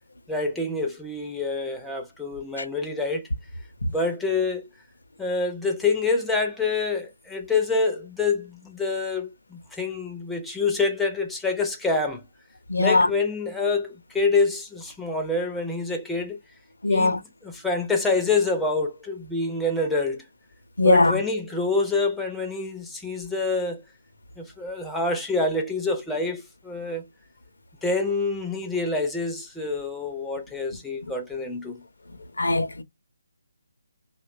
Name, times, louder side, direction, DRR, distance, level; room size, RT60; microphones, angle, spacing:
voice 1, 0.3-3.3 3.9-4.7 5.2-12.2 12.8-16.4 16.9-20.2 20.8-23.8 24.4-27.0 27.8-31.8, left 3 dB, 5° left, 0.4 m, -26 dB
voice 2, 12.7-13.1 16.8-17.2 20.8-21.2 32.4-32.8, left 2 dB, 65° left, 0.5 m, -20 dB
2.7 x 2.1 x 2.4 m
figure-of-eight pair, 145°, 0 cm